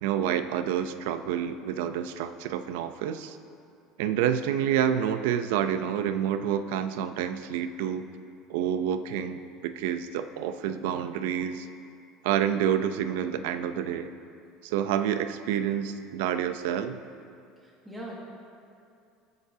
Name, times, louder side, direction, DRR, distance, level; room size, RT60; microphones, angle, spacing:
voice 1, 0.0-3.4 4.0-8.1 8.5-11.7 12.2-14.1 14.6-17.0, right 9 dB, 85° right, 10 dB, 0.6 m, -28 dB
voice 2, 17.6-18.2, right 1 dB, 5° right, -4 dB, 1.3 m, -41 dB
20.5 x 8.1 x 2.8 m, 2.5 s
cardioid pair, 155°, 0 cm